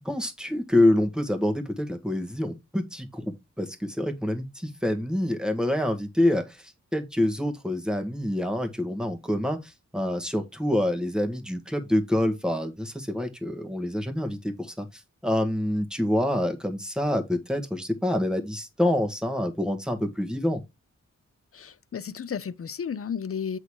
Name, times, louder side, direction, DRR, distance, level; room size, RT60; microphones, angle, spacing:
voice 1, 0.1-6.4 6.9-14.9 15.2-20.6, left 1 dB, 5° right, 1.7 m, -26 dB
voice 2, 21.5-23.6, left 7 dB, 50° left, 0.6 m, -33 dB
8.0 x 4.0 x 4.9 m
wide cardioid pair, 80°, 30 cm